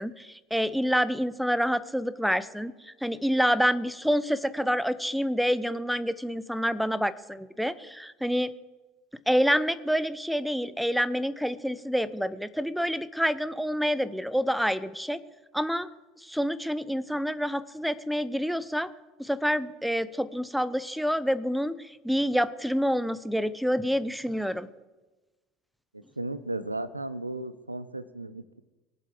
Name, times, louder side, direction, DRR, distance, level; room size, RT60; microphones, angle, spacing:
voice 1, 0.0-8.5 9.3-15.2 15.5-15.9 16.2-18.9 19.2-24.7, equal, ahead, 16 dB, 0.8 m, -27 dB
voice 2, 26.2-28.6, right 2 dB, 90° right, 15 dB, 0.6 m, -35 dB
23.5 x 7.8 x 4.9 m, 1.2 s
figure-of-eight pair, 70°, 0 cm